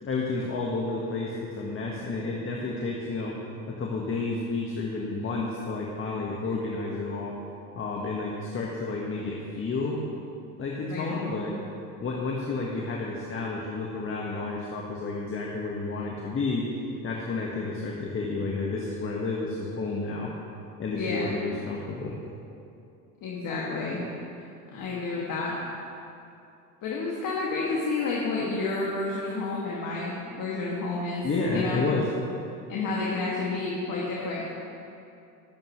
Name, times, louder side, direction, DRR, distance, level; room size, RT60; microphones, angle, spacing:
voice 1, 0.0-3.3 3.8-7.3 7.7-10.0 10.6-11.5 12.0-16.6 17.0-20.3 20.8-22.2 31.2-32.0, left 3 dB, 25° left, -2 dB, 1.6 m, -31 dB
voice 2, 10.9-11.4 20.9-21.3 23.2-24.0 24.7-25.6 26.8-31.2 31.5-31.8 32.7-34.4, left 3 dB, 45° left, -5 dB, 2.2 m, -30 dB
21.0 x 8.7 x 3.2 m, 2.7 s
hypercardioid pair, 80°, 46 cm